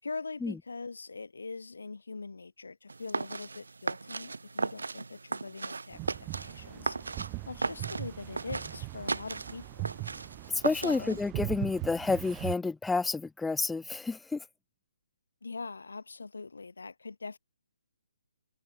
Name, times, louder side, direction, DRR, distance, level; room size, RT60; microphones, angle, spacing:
voice 1, 0.0-6.0 6.4-7.0 7.4-9.8 10.7-11.2 15.4-17.4, left 4 dB, 70° left, 6.8 m, -42 dB
sound 1, 2.9-11.3, right 3 dB, 70° right, 1.2 m, -37 dB
sound 2, 5.9-12.6, right 33 dB, 25° right, 2.1 m, -40 dB
voice 2, 10.6-14.4, left 3 dB, 5° left, 0.6 m, -30 dB
figure-of-eight pair, 135°, 0 cm